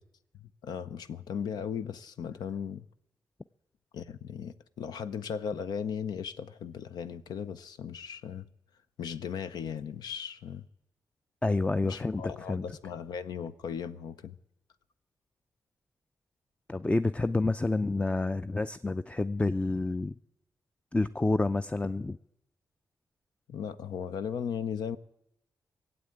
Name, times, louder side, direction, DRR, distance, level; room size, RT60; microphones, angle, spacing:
voice 1, 0.4-2.9 3.9-8.5 9.0-10.6 11.8-14.4 23.5-25.0, left 7 dB, 75° left, 0.6 m, -37 dB
voice 2, 11.4-12.6 16.7-20.1 20.9-22.2, left 2 dB, 15° left, 0.5 m, -29 dB
17.5 x 7.9 x 8.7 m
supercardioid pair, 50°, 7 cm